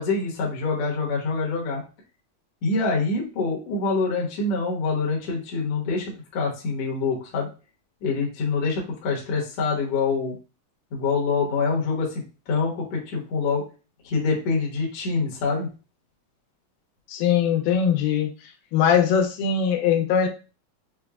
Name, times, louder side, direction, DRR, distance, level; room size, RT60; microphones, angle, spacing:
voice 1, 0.0-1.8 2.6-7.5 8.0-10.4 10.9-13.6 14.0-15.7, left 4 dB, 65° left, -2 dB, 1.5 m, -25 dB
voice 2, 17.1-18.3 18.7-20.3, left 7 dB, 85° left, 4 dB, 2.4 m, -21 dB
5.8 x 2.0 x 2.3 m, 0.33 s
omnidirectional pair, 4.0 m